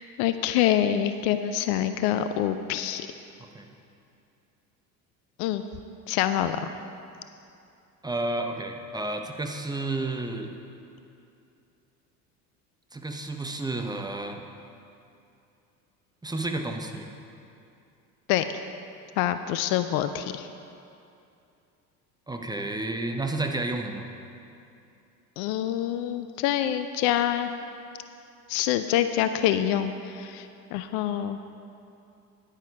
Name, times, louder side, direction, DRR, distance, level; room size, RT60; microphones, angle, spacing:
voice 1, 0.2-3.1 5.4-5.6 6.1-6.7 18.3-18.6 19.2-20.5 25.4-27.5 28.5-31.4, left 11 dB, 55° left, 10 dB, 0.6 m, -26 dB
voice 2, 8.0-10.5 12.9-14.4 16.2-17.1 22.3-24.1, right 2 dB, 10° right, 4 dB, 0.9 m, -31 dB
10.0 x 9.8 x 4.9 m, 2.7 s
hypercardioid pair, 70°, 46 cm